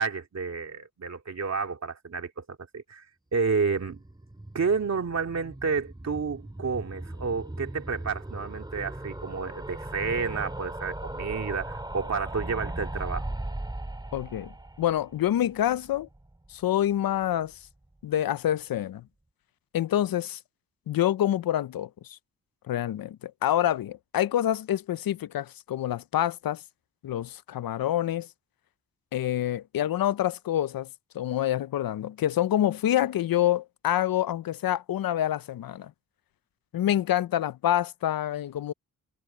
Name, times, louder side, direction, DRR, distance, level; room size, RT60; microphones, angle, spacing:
voice 1, 0.0-3.0 3.3-4.0 4.5-13.2, right 5 dB, 50° right, 2.4 m, -30 dB
sound 1, 3.7-16.6 16.9-17.0 17.2-17.3 17.5-17.6, right 1 dB, 10° right, 2.3 m, -38 dB
voice 2, 14.1-14.5 14.8-16.1 16.5-17.5 18.0-19.0 19.7-20.4 20.9-22.2 22.7-26.6 27.0-28.3 29.1-30.9 31.1-35.9 36.7-38.7, left 12 dB, 80° left, 0.5 m, -27 dB
wide cardioid pair, 145°, 35 cm